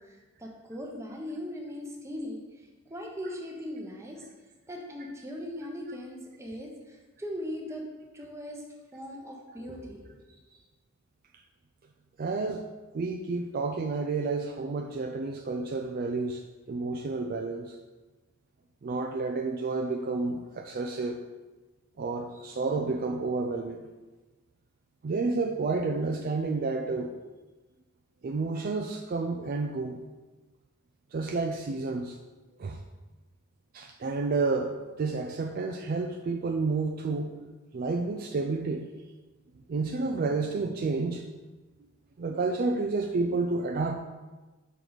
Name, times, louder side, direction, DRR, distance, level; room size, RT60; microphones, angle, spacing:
voice 1, 0.4-2.4 2.9-4.2 4.7-6.7 7.2-7.8 8.1-8.6 8.9-10.2, equal, 15° right, 0 dB, 0.9 m, -39 dB
voice 2, 12.2-12.6 12.9-16.4 16.7-17.8 18.8-21.2 22.0-23.8 25.0-27.1 28.2-30.0 31.1-32.2 32.6-32.8 33.7-34.7 35.0-37.3 37.7-38.9 39.7-41.2 42.2-43.9, right 3 dB, 45° right, 4 dB, 0.4 m, -30 dB
6.6 x 4.5 x 4.0 m, 1.2 s
head